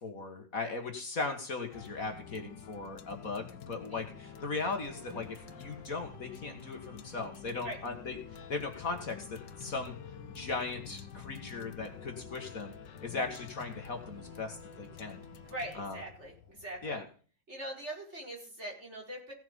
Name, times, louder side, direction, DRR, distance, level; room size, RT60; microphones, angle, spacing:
voice 1, 0.0-8.2 8.5-9.9 10.3-12.7 13.0-15.2 15.8-16.0 16.8-17.0, left 3 dB, 50° left, 5 dB, 2.2 m, -38 dB
sound 1, 1.7-17.0, left 8 dB, 85° left, 1.8 m, -49 dB
sound 2, 3.8-15.8, right 2 dB, 65° right, 3.4 m, -57 dB
voice 2, 15.5-17.0 17.5-19.3, right 1 dB, 40° right, -1 dB, 5.3 m, -42 dB
17.0 x 7.4 x 5.4 m, 0.40 s
omnidirectional pair, 1.9 m